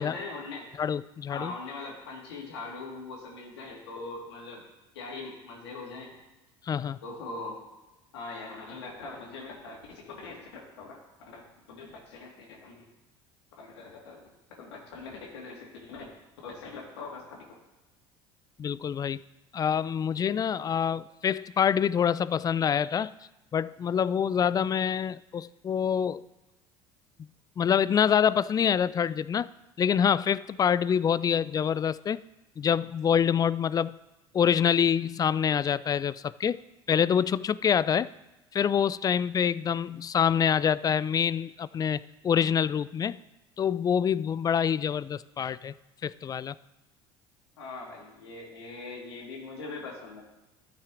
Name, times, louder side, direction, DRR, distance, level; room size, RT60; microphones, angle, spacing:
voice 1, 0.0-0.7 1.3-4.6 4.9-6.1 7.0-7.6 8.1-10.9 11.3-11.4 11.7-12.8 13.6-14.2 14.6-16.1 16.4-17.2 47.6-50.2, left 3 dB, 85° left, -1 dB, 2.2 m, -41 dB
voice 2, 0.8-1.5 6.7-7.0 18.6-19.2 19.5-23.1 23.5-26.2 27.6-29.5 29.8-32.2 32.6-34.0 34.3-36.6 36.9-38.1 38.5-42.0 42.2-43.2 43.6-45.7 46.0-46.5, left 8 dB, 30° left, 19 dB, 0.3 m, -26 dB
13.5 x 5.9 x 3.8 m, 1.0 s
hypercardioid pair, 70°, 14 cm